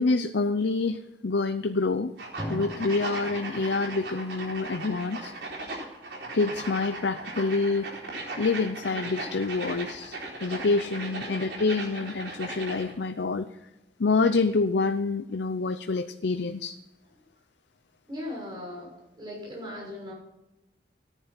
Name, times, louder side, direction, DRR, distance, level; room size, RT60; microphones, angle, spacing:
voice 1, 0.0-2.1 2.5-5.3 6.3-7.9 8.4-13.5 14.0-16.8, left 3 dB, 90° left, 9 dB, 0.6 m, -27 dB
sound 1, 2.2-12.9, right 2 dB, 85° right, 4.2 m, -37 dB
Drum, 2.4-5.1, equal, ahead, 3.6 m, -40 dB
voice 2, 10.9-11.7 18.1-20.1, left 1 dB, 25° right, -2 dB, 6.2 m, -39 dB
14.0 x 10.0 x 5.9 m, 0.93 s
head